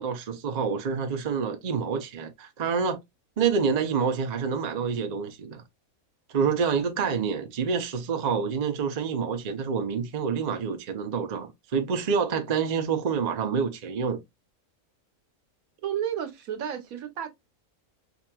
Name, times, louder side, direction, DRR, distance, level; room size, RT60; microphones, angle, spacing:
voice 1, 0.0-3.0 3.4-5.6 6.3-14.2, right 6 dB, 50° right, 0.5 m, -27 dB
voice 2, 15.8-17.3, right 9 dB, 75° right, 1.2 m, -31 dB
4.9 x 2.9 x 2.2 m
omnidirectional pair, 1.5 m